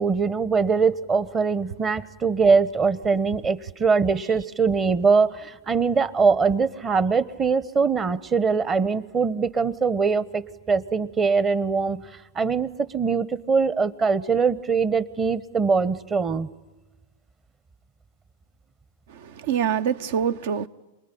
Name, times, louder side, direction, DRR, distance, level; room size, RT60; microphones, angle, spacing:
voice 1, 0.0-12.0 12.3-16.5, right 5 dB, 25° right, 1.0 m, -22 dB
voice 2, 19.1-20.7, right 8 dB, 65° right, 0.9 m, -25 dB
27.5 x 20.5 x 10.0 m
hypercardioid pair, 110°, 0 cm